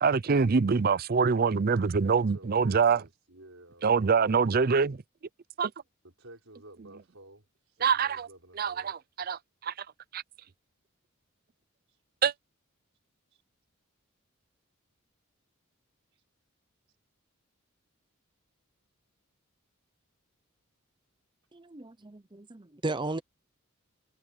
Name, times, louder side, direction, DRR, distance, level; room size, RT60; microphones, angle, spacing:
voice 1, 0.0-3.0 3.8-5.0 5.6-5.7 7.8-8.3 8.5-9.7 10.1-10.2 12.2-12.3, right 5 dB, 45° right, 0.5 m, -25 dB
voice 2, 2.3-5.0 6.2-8.9 11.9-12.0 13.3-13.4 16.1-16.2 16.9-17.0, right 1 dB, 70° right, 5.5 m, -53 dB
voice 3, 21.5-23.2, right 2 dB, 20° right, 0.8 m, -35 dB
head